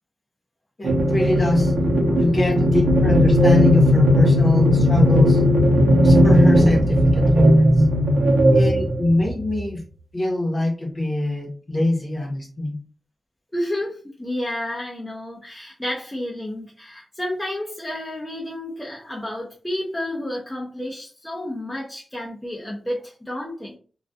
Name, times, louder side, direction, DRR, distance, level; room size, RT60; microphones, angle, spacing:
voice 1, 0.8-1.7 2.2-5.4 6.0-7.7 8.5-9.8 10.1-12.7, left 1 dB, 35° left, 0 dB, 0.9 m, -24 dB
sound 1, 0.8-9.6, equal, 75° right, 0.7 m, -16 dB
voice 2, 2.1-2.4 8.3-8.4 13.5-23.8, left 1 dB, 10° left, -4 dB, 0.6 m, -31 dB
2.3 x 2.2 x 2.6 m, 0.39 s
wide cardioid pair, 110°, 0 cm